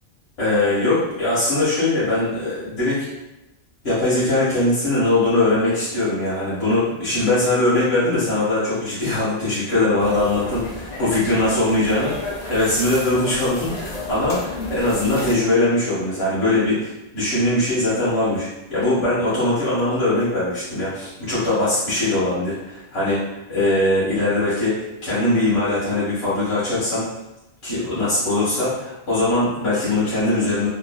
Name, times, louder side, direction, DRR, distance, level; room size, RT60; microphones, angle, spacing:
voice 1, 0.4-3.0 3.8-23.2 23.5-27.0 27.6-30.7, left 2 dB, 70° left, -13 dB, 1.3 m, -21 dB
sound 1, 10.0-15.3, left 2 dB, 45° left, 0.6 m, -32 dB
3.0 x 2.2 x 2.2 m, 0.97 s
omnidirectional pair, 1.1 m